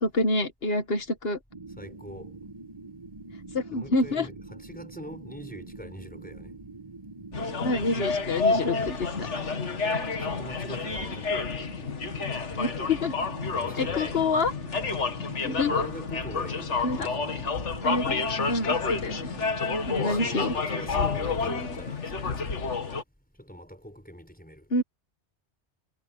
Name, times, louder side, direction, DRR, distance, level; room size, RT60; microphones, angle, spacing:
voice 1, 0.0-1.4 3.5-4.3 7.6-9.3 12.5-13.2 13.8-14.5 15.4-15.8 16.8-17.1 17.8-19.3 19.9-20.5 24.7-24.8, left 2 dB, 60° left, 1.8 m, -27 dB
sound 1, 1.5-21.4, right 3 dB, 25° right, 1.6 m, -44 dB
voice 2, 1.8-2.3 3.7-6.5 8.6-9.1 10.2-11.5 13.4-14.2 15.4-17.6 19.9-22.7 23.4-24.7, equal, 5° left, 6.2 m, -43 dB
sound 2, 7.3-23.0, left 4 dB, 90° left, 2.0 m, -29 dB
omnidirectional pair, 1.2 m